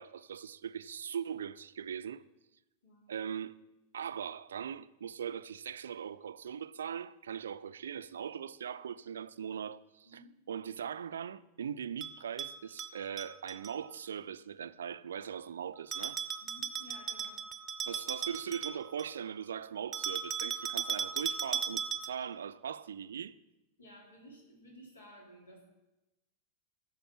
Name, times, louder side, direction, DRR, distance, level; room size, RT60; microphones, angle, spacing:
voice 1, 0.0-2.2 3.1-3.6 3.9-16.2 17.9-23.4, right 8 dB, 65° right, 0.4 m, -40 dB
voice 2, 2.8-3.2 10.0-10.3 16.4-17.4 23.8-25.6, equal, 75° left, 3.1 m, -55 dB
Bell, 12.0-13.7 15.9-19.2 19.9-22.3, right 7 dB, 20° right, 0.8 m, -37 dB
10.0 x 6.7 x 5.9 m
figure-of-eight pair, 90°, 0 cm